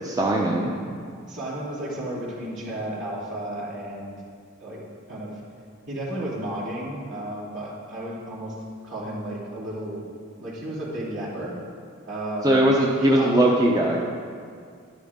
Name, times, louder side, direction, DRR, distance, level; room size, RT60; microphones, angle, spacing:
voice 1, 0.1-0.7 12.4-14.0, right 1 dB, 15° right, -2 dB, 0.7 m, -20 dB
voice 2, 1.3-4.2 4.6-4.8 5.1-5.3 5.9-8.5 8.8-10.0 10.4-11.5 12.1-12.7 13.0-13.6, right 1 dB, 60° right, -7 dB, 3.0 m, -33 dB
11.0 x 11.0 x 3.6 m, 2.2 s
head